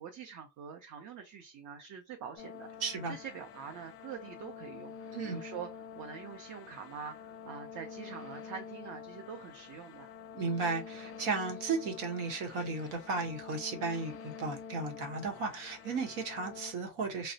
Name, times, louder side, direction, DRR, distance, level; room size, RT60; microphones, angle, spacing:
voice 1, 0.0-2.7 3.1-5.7 6.0-10.1, right 7 dB, 45° right, 0.6 m, -45 dB
sound 1, 2.4-16.7, left 7 dB, 35° left, 0.4 m, -47 dB
voice 2, 2.8-3.2 5.1-5.4 10.3-17.3, right 4 dB, 85° right, 1.1 m, -35 dB
3.1 x 2.0 x 2.7 m
cardioid pair, 145°, 42 cm